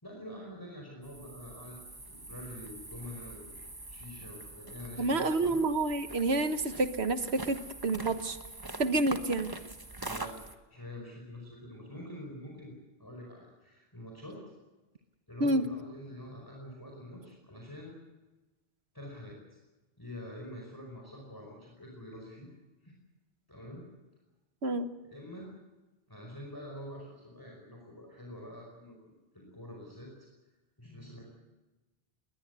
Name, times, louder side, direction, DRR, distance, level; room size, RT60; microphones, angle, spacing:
voice 1, 0.0-1.8 2.1-3.5 3.9-5.6 9.1-9.2 10.1-10.4 10.7-14.4 15.3-18.0 18.9-19.6 20.0-22.5 22.8-22.9 23.5-23.9 25.0-25.5 26.1-29.0 29.3-30.1 30.8-31.4, left 1 dB, 20° left, -1 dB, 5.0 m, -46 dB
sound 1, 1.0-10.6, right 2 dB, 20° right, 1.3 m, -44 dB
voice 2, 5.0-8.4 8.8-9.5 15.4-15.6 24.6-24.8, right 2 dB, 90° right, 10 dB, 1.6 m, -28 dB
20.5 x 20.5 x 8.2 m, 1.1 s
omnidirectional pair, 1.1 m